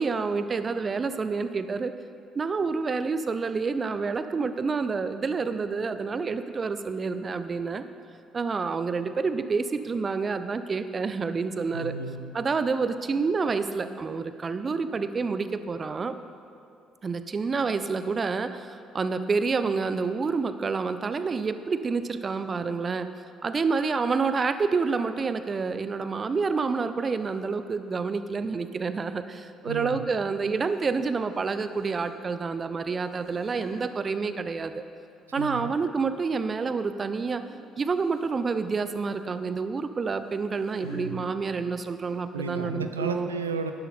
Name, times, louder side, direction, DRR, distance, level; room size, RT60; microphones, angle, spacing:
voice 1, 0.0-1.9 2.3-7.8 8.3-11.9 12.3-16.1 17.0-23.1 23.4-34.8 35.3-37.4 37.8-43.3, right 4 dB, 35° right, 11 dB, 0.6 m, -28 dB
voice 2, 11.7-12.4 29.7-30.1 35.4-35.7 40.8-41.3 42.3-43.7, right 4 dB, 80° right, 8 dB, 0.5 m, -33 dB
sound 1, 27.2-27.4 30.3-30.8 31.1-32.3 32.9-33.8 34.8-35.7 36.1-36.4 37.4-37.6 37.8-38.3 39.8-41.1 41.9-42.1 42.4-42.5 43.0-43.1, right 1 dB, 75° left, 1.8 m, -50 dB
11.0 x 11.0 x 4.3 m, 2.5 s
figure-of-eight pair, 50°, 0 cm